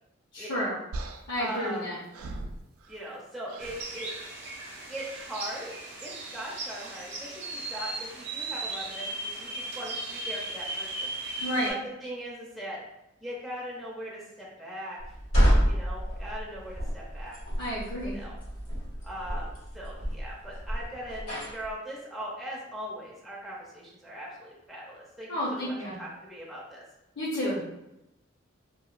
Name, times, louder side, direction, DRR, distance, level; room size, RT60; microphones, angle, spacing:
voice 1, 0.3-0.8 1.3-2.0 11.4-11.7 17.6-18.2 25.3-26.0 27.2-27.7, equal, 60° left, -7 dB, 0.6 m, -31 dB
sound 1, 0.9-3.2 3.5-3.9 4.9-5.3 6.6-6.9, right 2 dB, 85° right, 0.3 m, -41 dB
voice 2, 1.4-1.9 2.9-4.1 4.9-5.8 6.0-11.1 11.7-11.8 12.0-12.8 13.2-15.0 15.6-17.4 18.0-18.4 19.0-26.8, equal, ahead, -7 dB, 0.4 m, -40 dB
sound 2, 3.6-11.7, right 2 dB, 55° right, 0.7 m, -37 dB
sound 3, 15.0-21.7, equal, 90° left, 1.4 m, -28 dB
2.9 x 2.1 x 2.3 m, 0.92 s
head